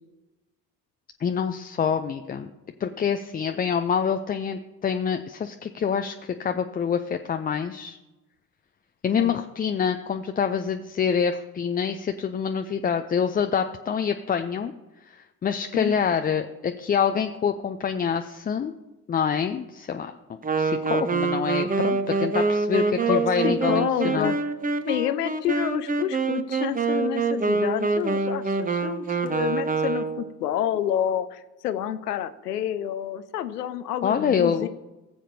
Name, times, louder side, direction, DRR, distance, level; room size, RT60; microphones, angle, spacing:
voice 1, 1.2-2.5 2.8-8.0 9.0-14.7 15.0-18.7 19.1-20.1 20.6-24.3 34.0-34.7, left 7 dB, 20° left, 7 dB, 0.4 m, -26 dB
Wind instrument woodwind instrument, 20.4-30.3, right 4 dB, 20° right, 0.8 m, -25 dB
voice 2, 23.1-24.3 24.8-34.7, left 10 dB, 85° left, 13 dB, 0.7 m, -28 dB
18.5 x 7.4 x 2.7 m, 1.0 s
figure-of-eight pair, 50°, 46 cm